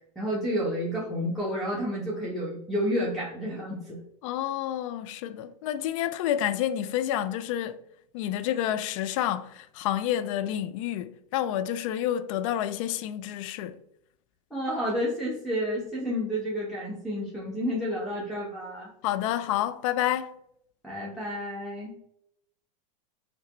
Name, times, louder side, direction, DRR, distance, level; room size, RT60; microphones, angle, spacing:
voice 1, 0.1-4.0 14.5-18.9 20.8-21.9, equal, ahead, 1.0 m, -30 dB
voice 2, 4.2-7.8 8.1-13.8 19.0-20.4, left 11 dB, 60° left, 0.4 m, -29 dB
5.7 x 2.1 x 2.9 m
supercardioid pair, 125°, 19 cm